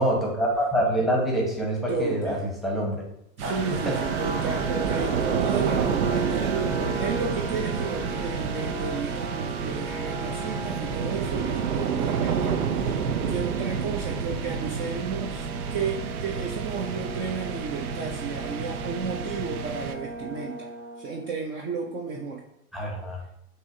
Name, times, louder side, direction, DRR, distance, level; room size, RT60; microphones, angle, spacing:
voice 1, 0.0-2.4 2.6-3.0 3.8-4.0 22.7-23.2, right 1 dB, ahead, -2 dB, 1.0 m, -25 dB
voice 2, 1.9-2.5 3.4-20.7 21.0-22.4, right 5 dB, 25° right, 1 dB, 0.4 m, -33 dB
sound 1, 3.4-21.3, right 3 dB, 55° right, 1.5 m, -35 dB
sound 2, 3.4-20.3, right 7 dB, 90° right, 0.6 m, -30 dB
6.1 x 2.8 x 2.6 m, 0.76 s
hypercardioid pair, 120°, 43 cm